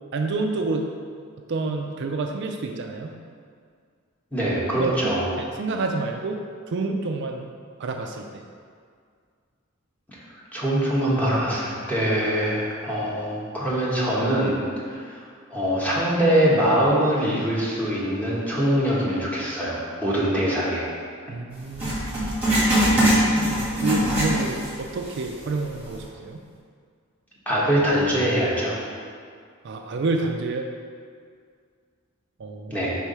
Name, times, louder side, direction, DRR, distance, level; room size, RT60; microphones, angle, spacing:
voice 1, 0.1-0.9 1.4-3.1 4.7-6.4 6.7-7.5 7.8-8.4 21.3-22.1 23.1-26.4 29.6-30.7 32.4-32.9, right 3 dB, 60° right, 3 dB, 0.4 m, -29 dB
voice 2, 4.3-5.3 10.5-14.6 14.9-15.2 15.5-20.9 27.4-28.8 32.7-32.9, equal, 10° left, -7 dB, 1.3 m, -23 dB
Writing, 21.8-24.8 25.1-25.2 25.9-26.0, equal, 10° right, 1.5 m, -21 dB
4.6 x 3.9 x 5.5 m, 2.1 s
head